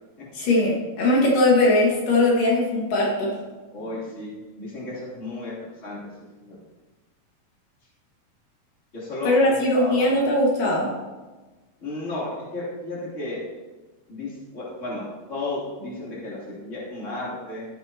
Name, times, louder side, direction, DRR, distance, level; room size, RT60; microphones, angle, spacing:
voice 1, 0.3-3.4 9.2-10.9, left 1 dB, 70° left, -3 dB, 3.4 m, -20 dB
voice 2, 3.7-5.5 5.8-6.0 6.4-6.6 8.9-10.1 11.8-13.4 14.1-17.7, left 2 dB, 20° left, -7 dB, 3.2 m, -33 dB
14.0 x 9.0 x 2.9 m, 1.2 s
omnidirectional pair, 4.0 m